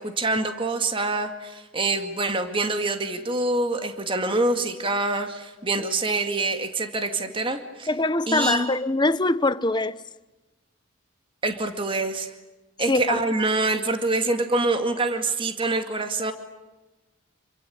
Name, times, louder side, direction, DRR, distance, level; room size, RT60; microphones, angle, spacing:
voice 1, 0.0-7.9 8.3-8.7 11.4-12.3 12.8-16.3, right 2 dB, 25° right, 2.2 m, -25 dB
voice 2, 7.9-10.0 12.9-13.2, left 2 dB, 20° left, 0.8 m, -23 dB
28.0 x 24.5 x 8.6 m
head